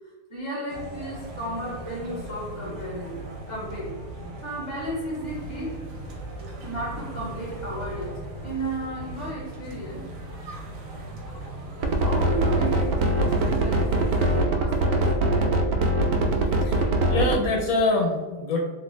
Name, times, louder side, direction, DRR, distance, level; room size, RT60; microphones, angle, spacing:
voice 1, 0.3-4.0 4.4-5.8 6.6-10.4 12.0-15.6, right 1 dB, 30° right, -6 dB, 0.5 m, -34 dB
sound 1, 0.7-14.5, right 1 dB, 60° right, 1.0 m, -38 dB
sound 2, 11.8-17.4, right 2 dB, 85° right, 1.2 m, -22 dB
voice 2, 16.3-18.6, left 2 dB, 70° left, 0 dB, 1.0 m, -25 dB
3.2 x 2.4 x 3.0 m, 1.3 s
omnidirectional pair, 1.8 m